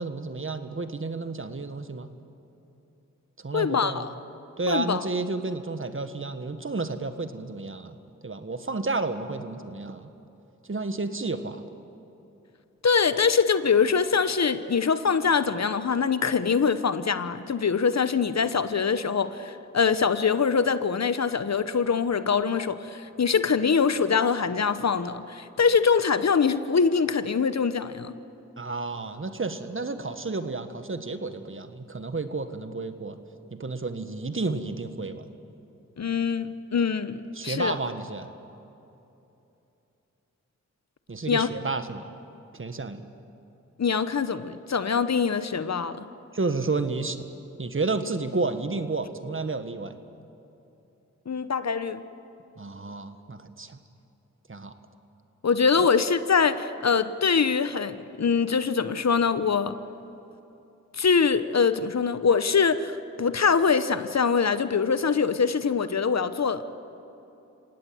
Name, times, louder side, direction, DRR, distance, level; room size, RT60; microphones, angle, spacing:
voice 1, 0.0-2.1 3.4-4.0 4.6-8.0 8.2-10.1 10.7-11.6 28.6-33.2 33.5-35.2 37.4-38.3 41.1-42.1 42.5-43.0 46.3-47.2 47.6-49.9 52.6-53.8 54.5-54.7, right 3 dB, 40° right, 9 dB, 1.7 m, -31 dB
voice 2, 3.5-4.1 4.7-5.0 12.8-28.1 36.0-37.8 41.3-41.5 43.8-46.1 51.3-52.0 55.4-59.7 61.0-66.6, left 6 dB, 60° left, 13 dB, 1.0 m, -24 dB
27.0 x 17.5 x 7.9 m, 2.9 s
cardioid pair, 45°, 31 cm